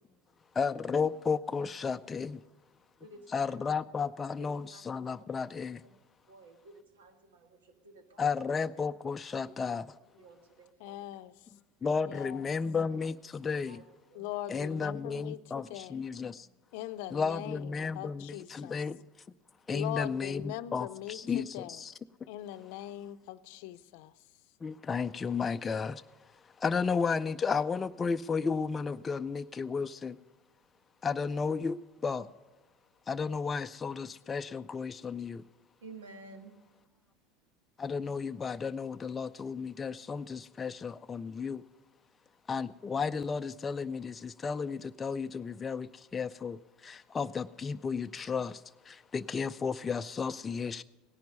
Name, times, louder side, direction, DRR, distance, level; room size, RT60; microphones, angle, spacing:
voice 1, 0.6-2.4 3.3-5.8 8.2-9.8 11.8-13.8 14.5-16.5 17.1-19.0 19.7-21.9 24.6-26.0 26.6-30.2 31.0-32.3 33.1-35.4 37.8-41.6 42.5-50.8, left 5 dB, 25° left, 0.4 m, -33 dB
voice 2, 2.2-2.5 3.0-3.7 4.4-4.8 5.8-6.0 6.3-8.6 9.6-11.2 12.1-12.5 13.6-13.8 14.1-14.3 15.3-15.4 16.9-17.2 35.8-36.5, right 2 dB, 85° right, 1.7 m, -54 dB
voice 3, 10.8-11.3 12.0-12.5 14.1-16.0 16.7-18.8 19.7-21.8 22.3-24.1, left 14 dB, 70° left, 0.6 m, -41 dB
17.5 x 10.5 x 5.4 m
hypercardioid pair, 85°, 0 cm